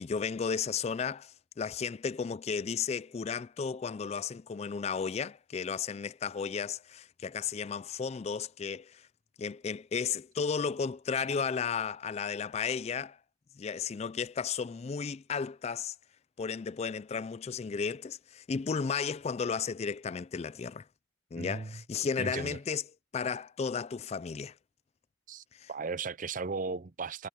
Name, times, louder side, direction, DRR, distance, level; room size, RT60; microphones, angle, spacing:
voice 1, 0.0-9.1 9.4-13.2 13.6-15.9 16.4-20.8 21.3-22.8 23.1-24.5 25.5-25.7, left 6 dB, 30° left, 0.3 m, -34 dB
voice 2, 21.4-21.8 22.2-22.6 25.3-27.3, right 4 dB, 40° right, 0.6 m, -36 dB
head